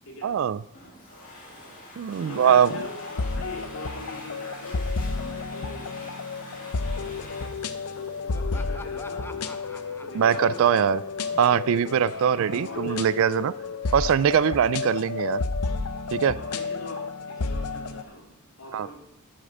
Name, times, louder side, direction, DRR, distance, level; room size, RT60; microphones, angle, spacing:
voice 1, 0.2-0.6 2.0-2.7 10.1-11.0 11.4-13.5 13.9-15.4 16.1-16.4 18.7-18.9, right 8 dB, 60° right, 19 dB, 0.3 m, -22 dB
Domestic sounds home sounds, 0.7-9.2, left 1 dB, 35° left, 2.5 m, -45 dB
voice 2, 0.8-1.3 1.7-1.8 2.3-5.9 6.3-6.7 7.7-10.7 11.2-11.3 12.1-13.5 14.7-14.8 16.3-18.3 18.6-19.0, left 1 dB, 65° left, -1 dB, 2.6 m, -43 dB
sound 1, 2.4-18.0, left 4 dB, 90° left, 0.7 m, -31 dB
Laughter, 8.3-13.8, left 2 dB, 10° left, 0.4 m, -47 dB
12.0 x 6.6 x 5.0 m, 0.83 s
head